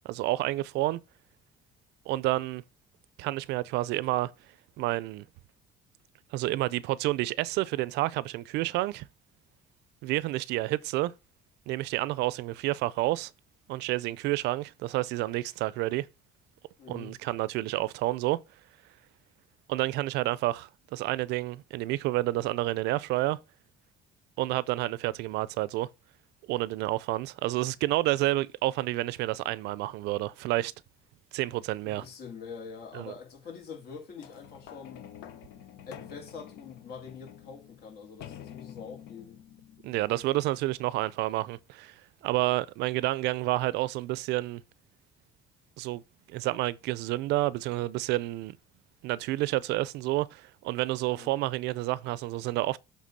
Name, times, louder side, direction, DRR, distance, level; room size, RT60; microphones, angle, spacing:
voice 1, 0.0-1.0 2.1-2.6 3.2-4.3 4.8-5.3 6.3-9.0 10.0-11.1 11.7-13.3 13.7-16.1 16.9-18.4 19.7-23.4 24.4-25.9 26.5-30.7 31.3-32.0 32.9-33.1 39.8-41.9 42.2-44.6 45.8-46.0 46.3-48.6 49.0-52.8, right 17 dB, 90° right, 0.5 m, -29 dB
voice 2, 16.8-17.1 31.8-35.0 35.9-39.4 51.1-51.3, left 5 dB, 70° left, 2.7 m, -45 dB
sound 1, 34.2-40.9 41.6-41.7, left 10 dB, 85° left, 0.9 m, -49 dB
7.4 x 3.5 x 5.7 m
cardioid pair, 110°, 17 cm